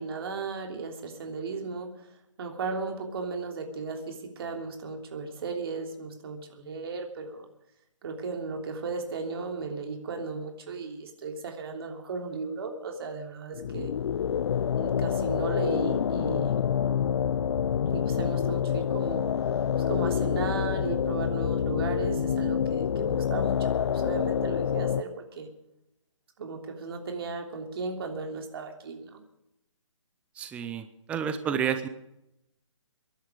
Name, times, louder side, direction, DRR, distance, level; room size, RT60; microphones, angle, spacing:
voice 1, 0.0-2.1 2.4-7.5 8.0-13.9 14.8-16.7 17.9-25.5 26.4-29.2, right 4 dB, 50° right, 3 dB, 3.2 m, -36 dB
sound 1, 13.5-25.0, left 8 dB, 55° left, 0.5 m, -27 dB
voice 2, 30.4-31.9, right 8 dB, 5° right, 10 dB, 0.6 m, -30 dB
23.0 x 11.5 x 4.9 m, 0.86 s
hypercardioid pair, 150°, 17 cm